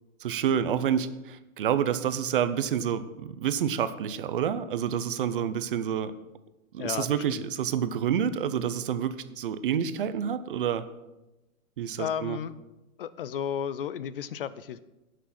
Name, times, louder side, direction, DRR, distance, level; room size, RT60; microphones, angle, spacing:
voice 1, 0.2-6.1 6.7-10.9 11.8-12.4, right 8 dB, 40° right, 12 dB, 0.6 m, -28 dB
voice 2, 6.8-7.4 12.0-12.5 13.0-14.8, left 8 dB, 40° left, 16 dB, 0.5 m, -33 dB
16.5 x 6.4 x 4.2 m, 0.99 s
hypercardioid pair, 155°, 43 cm